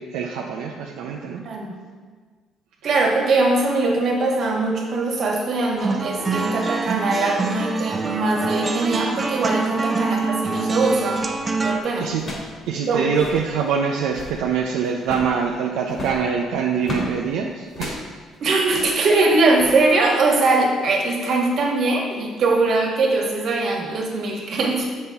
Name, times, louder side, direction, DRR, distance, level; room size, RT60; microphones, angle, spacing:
voice 1, 0.0-1.4 12.0-12.2 12.7-18.0, right 6 dB, 90° right, 0 dB, 0.5 m, -24 dB
voice 2, 1.4-1.7 2.8-11.3 11.6-12.1 12.9-13.1 18.4-24.9, right 3 dB, 60° right, 0 dB, 1.4 m, -21 dB
sound 1, 5.8-11.8, right 3 dB, 25° right, 0.6 m, -25 dB
sound 2, 11.2-11.5 12.2-12.6 12.8-12.9 13.1-13.5 14.0-14.4 15.0-15.4 15.9-17.1 17.7-18.0 18.6-19.0 19.5-19.7, left 1 dB, 45° left, 1.8 m, -33 dB
7.0 x 5.4 x 3.4 m, 1.5 s
cardioid pair, 90°, 0 cm